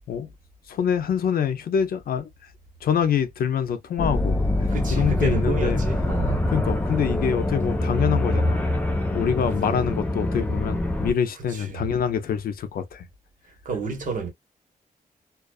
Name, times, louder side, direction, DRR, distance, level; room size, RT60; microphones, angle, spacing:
voice 1, 0.7-2.3 2.8-4.4 4.9-5.8 6.5-8.6 9.1-13.1, left 8 dB, 75° left, 0.4 m, -25 dB
sound 1, 4.0-11.1, left 1 dB, 10° left, 0.4 m, -24 dB
voice 2, 4.7-6.4 11.5-11.8 13.6-14.3, right 4 dB, 60° right, 1.2 m, -30 dB
2.4 x 2.3 x 2.2 m
wide cardioid pair, 165°, 15 cm